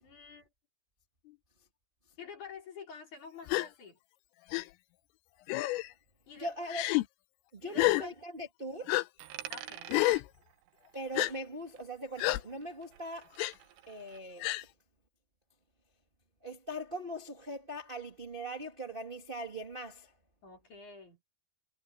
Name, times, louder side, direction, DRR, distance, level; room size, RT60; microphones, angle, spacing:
voice 1, 0.0-0.5 1.2-1.4 2.2-4.0 6.3-6.7 7.6-8.1 9.5-10.1 20.4-21.2, left 5 dB, 35° left, 6.6 m, -48 dB
Gasp, 3.5-3.7 4.5-4.6 5.5-5.9 6.7-7.0 7.8-8.0 8.9-9.0 9.9-10.2 11.2-11.3 12.2-12.4 13.4-13.5 14.4-14.6, left 20 dB, 90° left, 3.3 m, -28 dB
voice 2, 6.4-6.9 7.5-9.0 10.9-13.3 13.9-14.7 16.4-20.1, right 1 dB, 25° right, 1.2 m, -41 dB
Coin (dropping), 9.2-11.9 12.2-14.2, right 12 dB, 70° right, 3.0 m, -48 dB
omnidirectional pair, 5.9 m